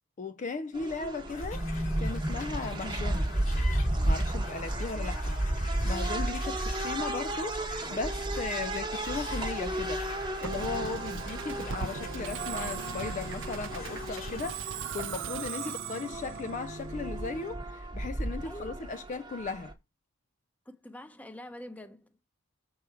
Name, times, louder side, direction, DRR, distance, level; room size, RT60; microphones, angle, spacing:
voice 1, 0.2-1.6 2.0-3.3 4.0-5.4 5.8-10.0 10.4-19.7, left 4 dB, 35° left, 0.3 m, -37 dB
sound 1, 0.7-19.7, right 1 dB, 20° right, 0.9 m, -33 dB
sound 2, 1.3-14.5, left 2 dB, 65° left, 2.5 m, -43 dB
Musical instrument, 10.4-17.8, right 6 dB, 60° right, 0.6 m, -39 dB
voice 2, 18.4-19.0 20.7-22.1, left 1 dB, 5° left, 0.7 m, -46 dB
6.8 x 4.7 x 4.7 m
head